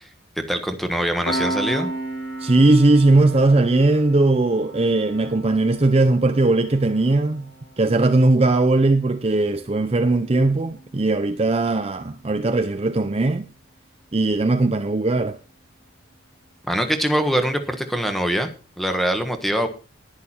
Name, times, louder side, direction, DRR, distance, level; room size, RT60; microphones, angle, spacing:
voice 1, 0.4-1.9 16.7-18.5 18.8-19.7, equal, ahead, 1.4 m, -23 dB
Piano, 1.2-12.3, right 1 dB, 90° left, 4.9 m, -35 dB
voice 2, 2.4-7.5 7.8-13.4 14.1-15.4, right 2 dB, 30° right, 0.6 m, -19 dB
11.0 x 10.5 x 4.4 m
head